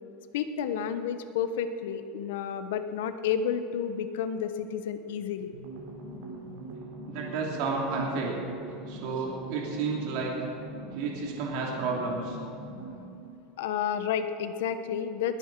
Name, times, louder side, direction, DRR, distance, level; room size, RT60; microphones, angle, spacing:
voice 1, 0.3-5.5 13.6-15.4, left 8 dB, 85° left, 10 dB, 1.0 m, -31 dB
sound 1, 5.5-13.2, right 2 dB, 85° right, 3.5 m, -42 dB
voice 2, 7.1-8.4 8.9-10.3 10.9-12.4, right 4 dB, 60° right, -2 dB, 2.8 m, -31 dB
21.0 x 9.1 x 6.1 m, 2.8 s
supercardioid pair, 155°, 0 cm